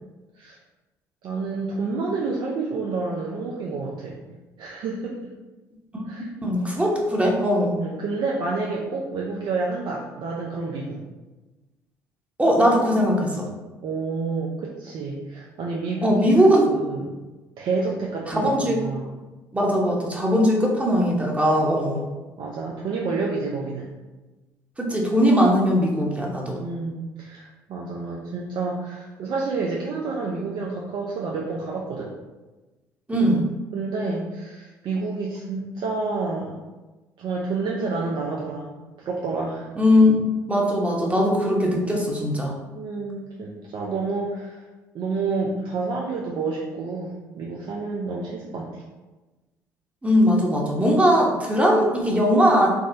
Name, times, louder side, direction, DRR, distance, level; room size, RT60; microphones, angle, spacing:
voice 1, 1.2-5.3 6.1-6.3 7.8-11.0 13.8-17.1 17.6-19.2 21.6-21.7 22.4-23.9 26.6-32.1 33.7-36.6 37.2-38.7 39.0-39.7 42.7-44.6 44.9-48.8, right 3 dB, 55° right, -2 dB, 0.4 m, -29 dB
voice 2, 6.3-7.7 12.4-13.5 16.0-16.7 18.3-18.8 19.5-22.0 24.8-26.6 33.1-33.4 39.8-40.2 40.5-42.5 50.0-52.7, equal, 15° right, -1 dB, 0.7 m, -20 dB
3.5 x 2.0 x 2.6 m, 1.2 s
hypercardioid pair, 55°, 9 cm